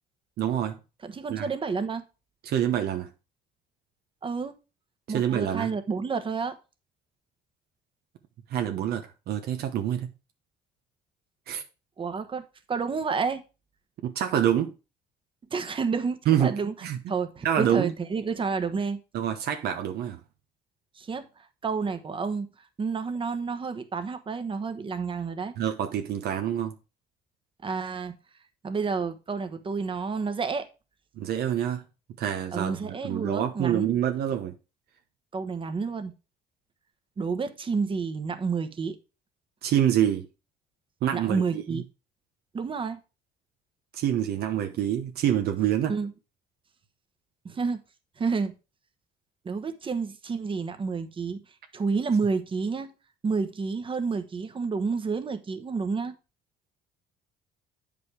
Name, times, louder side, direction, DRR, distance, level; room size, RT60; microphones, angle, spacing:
voice 1, 0.4-0.8 1.3-1.5 2.4-3.1 5.1-5.7 8.5-10.1 11.5-11.6 14.0-14.7 16.3-16.5 16.8-17.1 17.4-17.9 19.1-20.2 25.6-26.7 31.2-31.8 32.2-34.5 39.6-40.3 41.0-41.8 43.9-45.9, right 10 dB, 70° right, 1.0 m, -26 dB
voice 2, 1.0-2.0 4.2-4.5 5.1-6.6 12.0-13.4 15.5-16.7 17.1-19.0 21.0-22.5 22.8-25.5 27.6-28.2 28.6-30.7 32.5-33.9 35.3-36.1 37.2-39.0 41.1-41.8 42.5-43.0 45.9-46.1 47.4-47.8 48.2-48.5 49.4-51.4 51.7-52.9 53.2-56.1, right 5 dB, 30° right, 1.2 m, -30 dB
8.5 x 5.2 x 4.9 m
cardioid pair, 110°, 17 cm